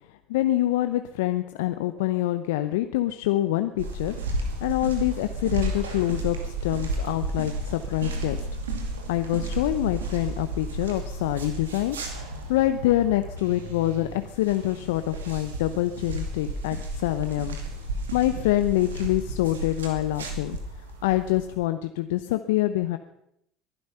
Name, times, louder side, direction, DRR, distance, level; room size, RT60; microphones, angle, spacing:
voice 1, 0.3-8.4 9.1-17.6 18.1-20.6 21.0-23.0, left 14 dB, 75° left, 10 dB, 0.7 m, -26 dB
sound 1, 3.8-21.6, right 2 dB, 85° right, 2.5 m, -33 dB
22.0 x 11.5 x 5.6 m, 0.77 s
hypercardioid pair, 70°, 0 cm